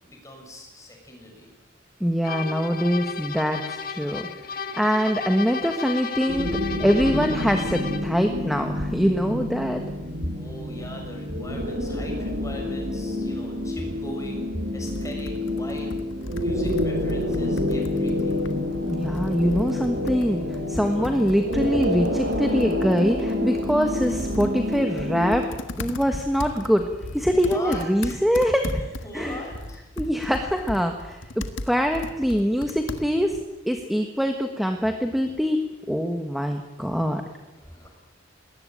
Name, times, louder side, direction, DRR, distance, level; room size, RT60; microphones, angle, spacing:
voice 1, 0.0-1.5 10.3-16.0 16.4-18.4 27.3-28.2 28.7-29.9 37.5-37.9, left 1 dB, 15° left, 2 dB, 6.7 m, -40 dB
voice 2, 2.0-4.2 4.8-6.5 6.8-9.8 18.9-20.4 20.7-25.5 25.8-26.9 27.1-28.8 29.1-29.4 30.0-33.4 33.7-35.6 35.9-37.2, equal, ahead, 4 dB, 1.4 m, -23 dB
sound 1, 2.2-8.2, left 5 dB, 50° left, 1.6 m, -34 dB
sound 2, 6.3-25.5, left 1 dB, 60° right, 6.3 m, -28 dB
Computer keyboard, 14.8-33.4, left 1 dB, 85° left, 1.7 m, -38 dB
21.0 x 19.0 x 9.0 m, 1.0 s
head